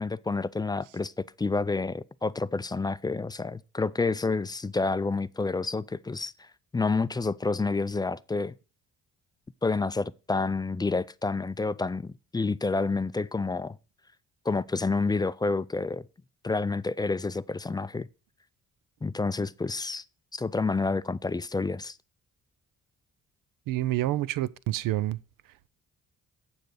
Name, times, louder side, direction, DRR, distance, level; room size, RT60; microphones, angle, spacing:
voice 1, 0.0-6.3 6.7-8.5 9.6-13.8 14.5-16.0 16.4-18.1 19.0-20.0 20.3-22.0, left 3 dB, 15° left, 0.3 m, -29 dB
voice 2, 23.7-25.2, right 15 dB, 85° right, 0.6 m, -28 dB
7.8 x 7.0 x 4.8 m
cardioid pair, 85°, 32 cm